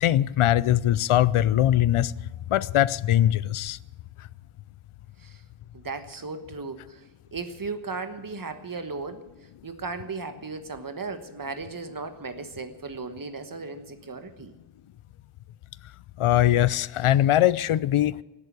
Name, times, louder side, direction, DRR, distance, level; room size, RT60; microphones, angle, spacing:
voice 1, 0.0-2.1 2.5-3.8 16.2-18.2, left 12 dB, 85° left, 0.6 m, -21 dB
voice 2, 5.7-7.0 7.3-9.2 9.6-14.5, right 4 dB, 45° right, 1.3 m, -36 dB
17.5 x 8.5 x 8.4 m
wide cardioid pair, 105°, 48 cm